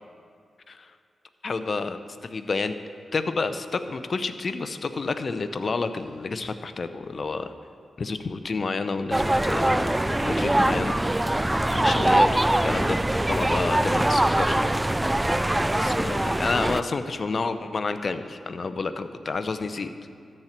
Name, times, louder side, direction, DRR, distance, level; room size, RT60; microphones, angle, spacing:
voice 1, 1.4-2.7 3.1-7.5 8.0-11.0 11.7-13.0 13.3-14.6 15.8-19.9, left 4 dB, 55° left, 10 dB, 0.6 m, -29 dB
sound 1, 9.1-16.8, right 1 dB, 15° right, 0.4 m, -23 dB
13.5 x 4.5 x 8.0 m, 2.4 s
supercardioid pair, 40°, 0 cm